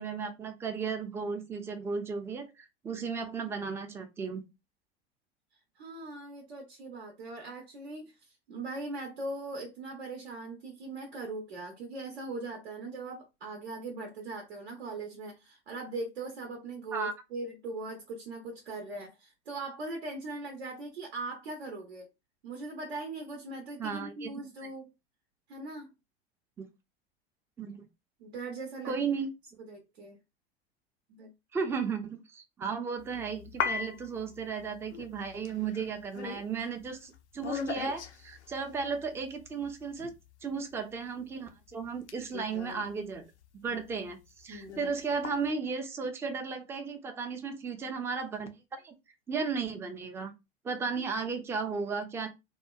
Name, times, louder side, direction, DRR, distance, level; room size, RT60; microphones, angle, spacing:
voice 1, 0.0-4.4 16.9-17.1 23.8-24.3 26.6-26.7 27.6-27.9 28.9-29.3 31.5-40.1 40.4-43.2 43.6-48.9 49.3-50.3 50.6-52.3, right 5 dB, 10° right, 0.3 m, -35 dB
voice 2, 5.8-22.1 22.4-24.9 25.5-25.9 28.2-28.9 29.7-30.2 31.1-31.3 43.7-43.8 44.5-44.8, right 2 dB, 75° right, 0.7 m, -40 dB
sound 1, 33.0-40.5 41.0-44.1 44.4-45.5, left 6 dB, 85° left, 0.5 m, -39 dB
2.7 x 2.1 x 2.3 m
figure-of-eight pair, 80°, 33 cm